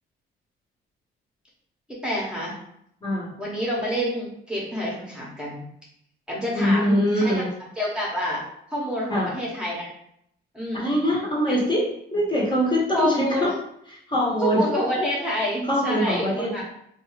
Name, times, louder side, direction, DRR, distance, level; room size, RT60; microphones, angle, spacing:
voice 1, 1.9-2.5 3.4-5.6 6.3-7.5 7.8-8.4 8.7-9.9 10.5-10.9 12.9-13.4 14.4-16.6, equal, 5° right, -5 dB, 0.9 m, -27 dB
voice 2, 3.0-3.3 6.6-7.5 9.1-9.3 10.7-11.9 12.1-13.5 13.9-14.6 15.7-16.6, equal, 25° left, -4 dB, 1.0 m, -23 dB
2.7 x 2.4 x 3.1 m, 0.73 s
cardioid pair, 90°, 20 cm